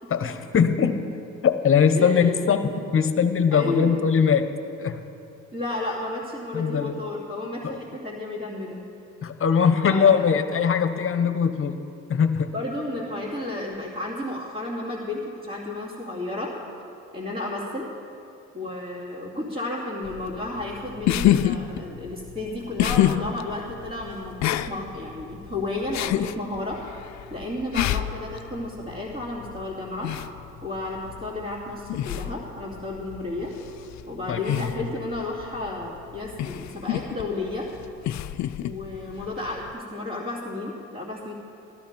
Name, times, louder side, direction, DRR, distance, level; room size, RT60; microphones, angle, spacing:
voice 1, 0.1-1.1 1.4-4.5 4.8-5.0 6.5-6.9 7.6-7.8 9.2-11.8 12.1-12.5 34.3-34.9, left 6 dB, 45° left, 10 dB, 0.9 m, -21 dB
voice 2, 1.9-2.4 3.5-4.0 5.5-8.8 9.9-10.3 12.5-16.5 17.1-17.9 18.5-26.8 27.3-30.1 30.6-33.5 34.1-37.7 38.6-41.3, left 2 dB, 30° right, -7 dB, 2.8 m, -32 dB
sound 1, 20.0-39.7, left 12 dB, 65° left, 0.5 m, -29 dB
13.5 x 12.5 x 5.2 m, 2.6 s
cardioid pair, 90°, 30 cm